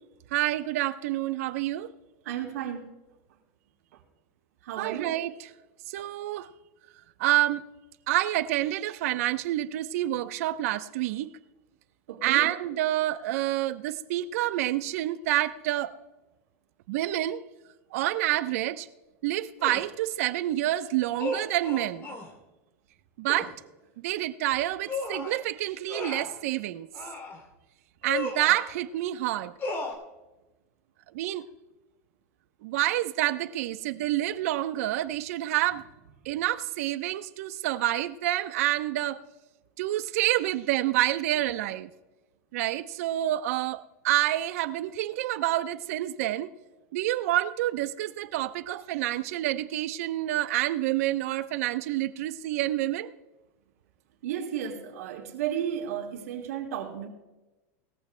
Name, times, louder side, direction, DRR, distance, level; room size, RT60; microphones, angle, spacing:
voice 1, 0.3-1.9 4.8-5.5 5.9-6.5 7.2-7.6 8.1-11.3 12.2-15.9 16.9-17.4 17.9-18.9 19.2-22.1 23.2-23.5 24.0-26.9 28.0-29.5 31.1-31.5 32.6-35.8 36.3-39.2 39.8-41.9 42.5-46.5 46.9-53.1, right 15 dB, 70° right, 0.8 m, -28 dB
voice 2, 2.2-2.9 4.6-5.1 12.1-12.5 35.7-35.8 54.2-57.1, right 9 dB, 85° right, 2.7 m, -33 dB
sound 1, 19.6-19.9 21.2-22.3 23.3-23.5 24.9-25.4 25.9-26.4 26.9-27.4 28.0-28.6 29.6-29.9, left 3 dB, 25° left, 2.8 m, -34 dB
20.0 x 14.5 x 2.2 m
supercardioid pair, 150°, 8 cm